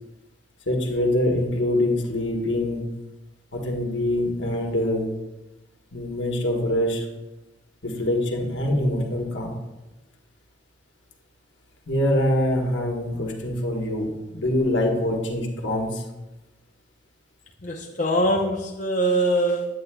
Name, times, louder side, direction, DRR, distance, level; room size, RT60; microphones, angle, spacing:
voice 1, 0.7-2.8 3.5-5.1 5.9-7.1 7.8-9.6 11.9-16.0, left 1 dB, 85° left, 1 dB, 1.4 m, -24 dB
voice 2, 17.6-19.7, right 1 dB, 40° left, 0 dB, 0.7 m, -23 dB
10.0 x 8.5 x 2.3 m, 1.0 s
head